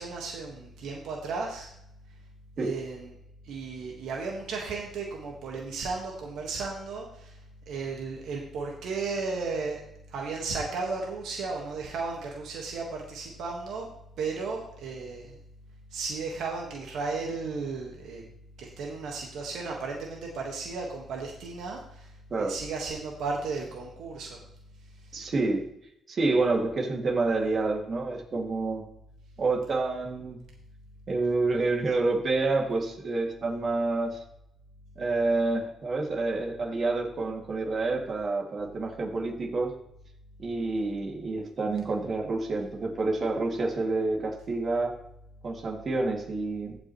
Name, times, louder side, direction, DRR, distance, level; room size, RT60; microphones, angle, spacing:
voice 1, 0.0-1.7 2.6-3.1 3.4-7.4 7.7-9.8 10.1-13.9 14.2-15.4 15.9-18.2 18.6-22.1 22.4-24.4, right 4 dB, 80° right, -1 dB, 1.6 m, -34 dB
voice 2, 25.1-25.7 26.1-28.9 29.4-30.4 31.1-34.2 35.0-39.7 40.4-44.9 45.4-46.8, right 3 dB, 45° right, 0 dB, 2.3 m, -28 dB
15.0 x 6.0 x 3.1 m, 0.76 s
cardioid pair, 90°, 0 cm